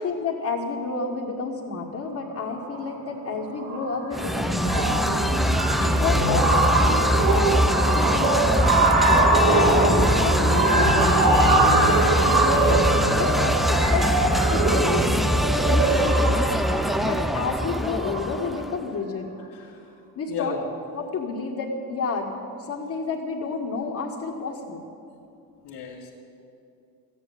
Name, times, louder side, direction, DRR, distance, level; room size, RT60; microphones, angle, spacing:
voice 1, 0.0-4.9 6.0-9.3 9.6-12.8 13.2-14.1 14.5-16.6 17.0-19.3 20.2-20.6 20.9-22.3 22.6-24.8, left 4 dB, 45° left, -5 dB, 2.0 m, -30 dB
sound 1, 2.5-2.8 3.1-3.3 3.6-18.5, right 2 dB, 60° right, 3.5 m, -23 dB
sound 2, 4.1-18.8, equal, ahead, 0.5 m, -23 dB
voice 2, 5.7-6.2 9.4-9.9 19.5-19.8 20.3-20.6 25.6-26.1, left 4 dB, 70° left, -7 dB, 2.5 m, -32 dB
14.0 x 9.9 x 8.7 m, 2.6 s
supercardioid pair, 85°, 39 cm